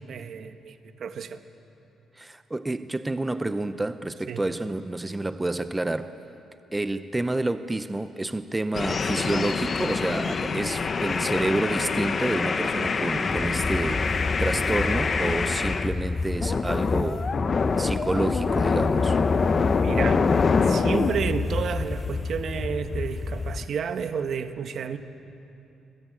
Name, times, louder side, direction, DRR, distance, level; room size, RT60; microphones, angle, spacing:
voice 1, 0.1-1.4 4.3-4.4 19.8-20.3 20.7-25.0, right 6 dB, 60° right, 1.3 m, -31 dB
voice 2, 2.1-6.1 6.7-17.3 17.8-19.2, right 2 dB, 15° right, 0.8 m, -29 dB
sound 1, 8.7-15.9 16.4-21.2, left 5 dB, 40° left, 1.1 m, -25 dB
sound 2, 13.2-23.7, left 3 dB, 25° left, 0.7 m, -30 dB
24.5 x 21.0 x 9.0 m
cardioid pair, 90°, 0 cm